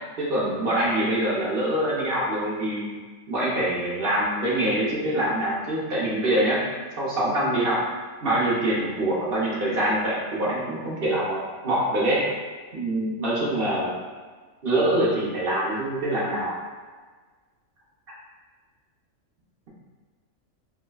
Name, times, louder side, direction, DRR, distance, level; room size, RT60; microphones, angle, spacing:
voice 1, 0.2-2.9 3.3-6.6 7.0-7.8 8.2-12.2 12.7-13.9 14.6-16.5, right 1 dB, 50° right, -6 dB, 0.8 m, -24 dB
4.6 x 2.1 x 2.2 m, 1.4 s
omnidirectional pair, 1.4 m